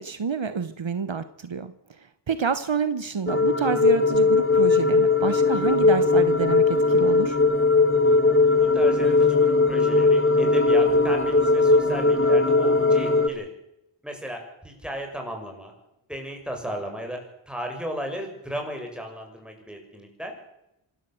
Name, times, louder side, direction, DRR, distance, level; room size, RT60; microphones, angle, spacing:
voice 1, 0.0-1.7 2.3-7.4, right 6 dB, 65° right, 12 dB, 1.2 m, -28 dB
sound 1, 3.3-13.3, left 3 dB, 25° left, 1.5 m, -19 dB
voice 2, 8.6-13.5 14.0-15.7 16.1-20.4, equal, ahead, 2 dB, 6.8 m, -35 dB
26.5 x 12.5 x 7.9 m, 0.84 s
wide cardioid pair, 65°, 48 cm